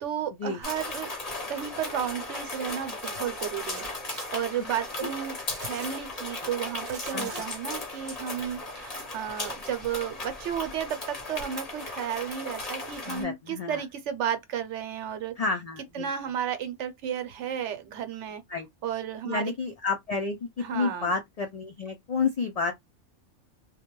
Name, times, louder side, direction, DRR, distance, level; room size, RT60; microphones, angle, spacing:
voice 1, 0.0-1.1 1.5-3.9 4.3-5.4 5.6-15.3 15.9-18.4 18.8-19.5 20.6-21.1, right 9 dB, 75° right, 0.9 m, -33 dB
sound 1, 0.6-13.2, left 2 dB, 35° left, 0.9 m, -36 dB
sound 2, 3.7-4.3 5.5-5.9 6.9-7.4, right 6 dB, 55° right, 0.7 m, -44 dB
voice 2, 7.1-7.4 13.1-13.8 15.4-16.1 18.5-18.7 19.2-22.7, left 4 dB, 80° left, 0.3 m, -30 dB
2.3 x 2.1 x 3.0 m
omnidirectional pair, 1.2 m